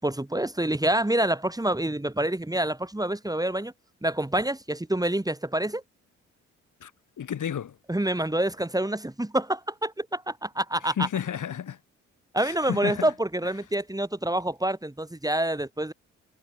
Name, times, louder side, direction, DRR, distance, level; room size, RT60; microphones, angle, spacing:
voice 1, 0.0-3.7 4.0-5.8 7.9-11.1 12.3-15.9, right 1 dB, 10° right, 4.0 m, -27 dB
voice 2, 7.2-7.8 10.8-11.8 12.4-13.1, left 9 dB, 55° left, 5.8 m, -32 dB
hypercardioid pair, 50°, 36 cm